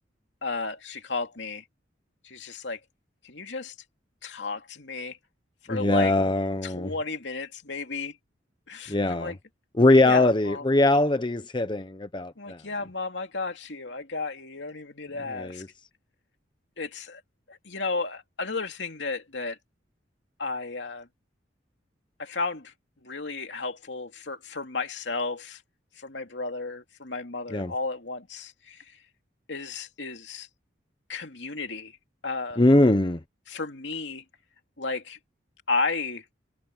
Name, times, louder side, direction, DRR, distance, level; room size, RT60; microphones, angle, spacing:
voice 1, 0.4-1.6 2.2-2.8 3.2-3.7 4.2-5.2 5.6-6.1 6.6-8.2 8.7-9.4 10.0-10.6 12.4-15.6 16.8-17.2 17.5-19.6 20.4-21.1 22.2-22.7 23.0-25.6 26.0-29.0 29.5-30.5 31.1-32.0 32.2-32.6 33.5-34.2 34.8-35.2 35.7-36.2, left 3 dB, 75° left, 2.7 m, -33 dB
voice 2, 5.7-6.9 8.9-9.3 9.7-12.6 15.3-15.7 27.5-27.7 32.6-33.2, left 2 dB, 25° left, 0.9 m, -22 dB
head